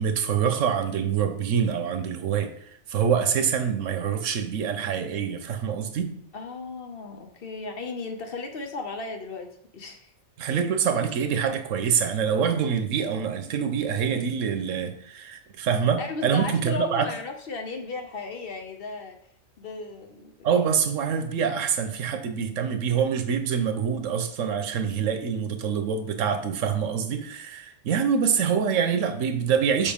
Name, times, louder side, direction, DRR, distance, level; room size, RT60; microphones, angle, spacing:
voice 1, 0.0-6.1 10.4-17.1 20.4-29.9, right 7 dB, 90° right, 8 dB, 1.1 m, -25 dB
voice 2, 6.3-10.1 16.0-19.2 19.6-20.5, left 3 dB, 55° left, 4 dB, 0.9 m, -35 dB
7.3 x 4.7 x 3.6 m, 0.66 s
omnidirectional pair, 1.3 m